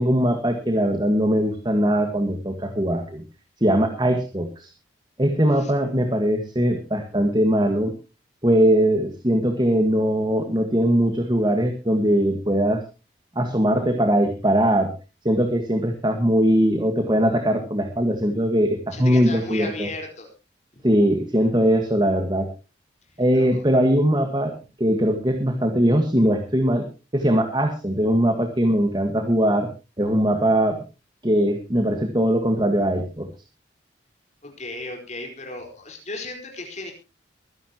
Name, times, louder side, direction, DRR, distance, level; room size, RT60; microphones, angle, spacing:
voice 1, 0.0-3.2 3.6-4.7 5.2-7.9 8.4-12.8 13.4-14.9 15.3-19.9 20.8-22.5 23.2-24.5 24.8-26.9 27.1-29.7 30.0-30.8 31.2-33.3, equal, 25° right, 5 dB, 1.6 m, -21 dB
voice 2, 18.9-20.3 20.7-20.8 23.1-23.6 34.4-36.9, left 2 dB, 40° left, 3 dB, 4.7 m, -35 dB
23.0 x 11.0 x 3.0 m, 0.30 s
head